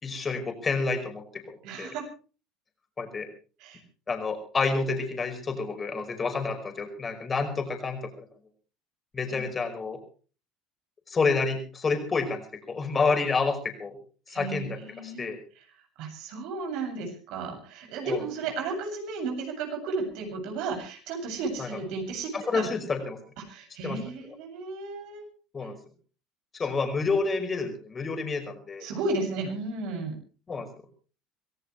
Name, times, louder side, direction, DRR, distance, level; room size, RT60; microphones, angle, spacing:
voice 1, 0.0-1.9 3.0-3.3 4.1-8.3 9.1-10.0 11.1-14.0 14.3-15.4 18.1-18.2 21.6-21.7 22.3-23.2 23.8-24.0 25.5-25.8 26.6-28.9 30.5-30.7, left 4 dB, 25° left, 4 dB, 5.4 m, -29 dB
voice 2, 1.6-2.1 3.6-3.8 9.3-9.4 14.3-15.3 16.0-22.7 23.5-25.3 28.8-30.2, right 3 dB, 70° right, 4 dB, 7.5 m, -33 dB
25.0 x 16.0 x 3.3 m, 0.37 s
supercardioid pair, 110°, 0 cm